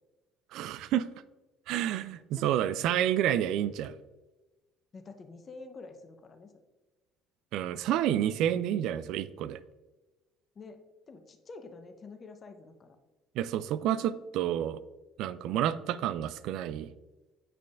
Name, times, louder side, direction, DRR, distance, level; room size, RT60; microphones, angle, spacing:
voice 1, 0.5-1.1 1.7-4.0 7.5-9.6 13.4-14.8 15.2-16.9, right 11 dB, 65° right, 15 dB, 0.3 m, -29 dB
voice 2, 4.9-6.5 10.5-10.8 11.1-13.0, left 3 dB, 40° left, 6 dB, 0.9 m, -48 dB
8.4 x 5.1 x 2.5 m, 1.1 s
hypercardioid pair, 60°, 0 cm